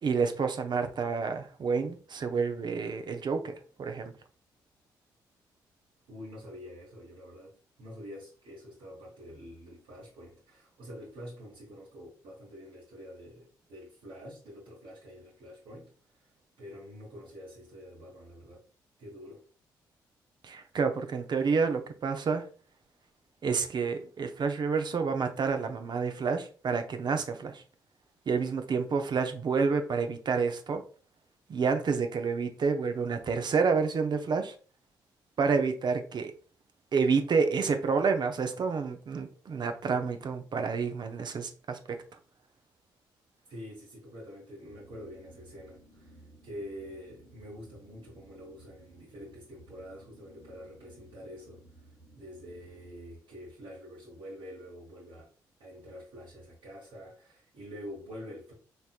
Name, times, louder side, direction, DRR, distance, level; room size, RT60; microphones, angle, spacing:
voice 1, 0.0-4.1 20.4-22.4 23.4-27.6 28.3-30.8 31.5-34.5 35.4-36.3 36.9-42.0, right 5 dB, 50° right, 0.6 m, -29 dB
voice 2, 6.1-7.5 7.8-16.3 16.6-18.6 19.0-19.4 43.5-51.9 52.2-55.3 55.6-58.5, equal, 70° right, 1.2 m, -46 dB
sound 1, 44.6-52.9, right 2 dB, 90° right, 1.8 m, -57 dB
4.3 x 3.3 x 2.4 m
hypercardioid pair, 45°, 10 cm